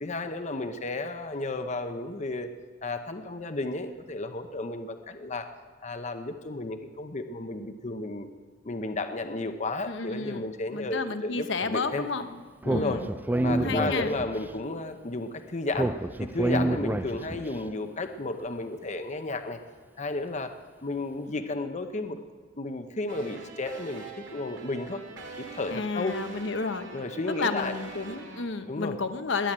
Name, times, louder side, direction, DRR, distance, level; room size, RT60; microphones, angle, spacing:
voice 1, 0.0-2.5 2.8-5.5 5.8-8.3 8.6-12.1 12.6-13.0 13.4-15.9 16.2-19.6 20.0-20.5 20.8-22.2 22.6-25.0 25.4-26.2 26.9-27.7 28.7-29.0, left 2 dB, 40° left, 7 dB, 0.8 m, -33 dB
voice 2, 9.9-12.4 12.7-13.1 13.5-14.1 25.7-26.9 27.4-29.5, left 4 dB, 65° left, 9 dB, 1.0 m, -31 dB
Speech, 12.6-14.5 15.7-17.5, right 1 dB, 10° right, 0.4 m, -28 dB
sound 1, 23.1-28.4, right 3 dB, 70° right, 2.4 m, -44 dB
20.5 x 7.9 x 8.9 m, 1.5 s
head